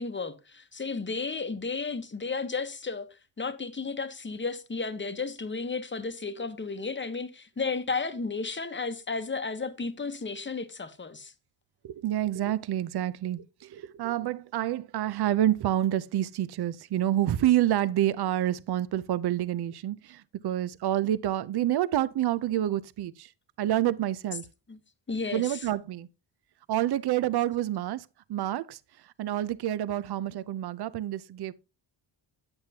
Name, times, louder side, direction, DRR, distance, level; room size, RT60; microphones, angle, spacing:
voice 1, 0.0-3.1 3.4-11.3 24.7-24.8 25.1-25.6, left 4 dB, 25° left, 0.9 m, -33 dB
voice 2, 11.8-23.3 23.6-24.4 25.3-26.1 26.7-31.5, right 12 dB, 55° right, 0.6 m, -28 dB
8.7 x 7.9 x 2.8 m
cardioid pair, 95°, 47 cm